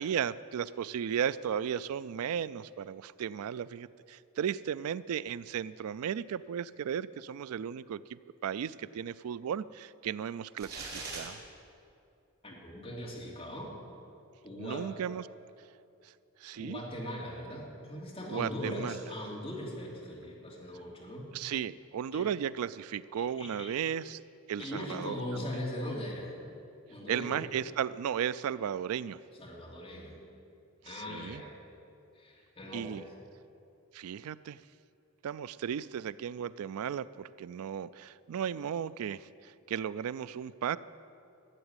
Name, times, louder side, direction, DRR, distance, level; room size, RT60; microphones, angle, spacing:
voice 1, 0.0-11.4 14.6-15.2 16.0-16.1 16.4-16.8 18.3-18.9 21.3-24.2 24.5-25.5 27.1-29.2 30.8-31.4 32.7-33.0 33.9-34.6 35.2-40.8, right 8 dB, 80° right, 17 dB, 0.3 m, -35 dB
sound 1, 10.6-11.3, right 3 dB, 45° right, 3.2 m, -40 dB
voice 2, 12.4-13.7 14.4-14.9 16.5-21.3 22.1-22.3 23.2-23.8 24.6-26.3 26.9-27.4 29.4-30.2 30.8-31.5 32.1-33.1, left 1 dB, 25° left, -4 dB, 2.9 m, -40 dB
13.5 x 8.1 x 9.8 m, 2.6 s
head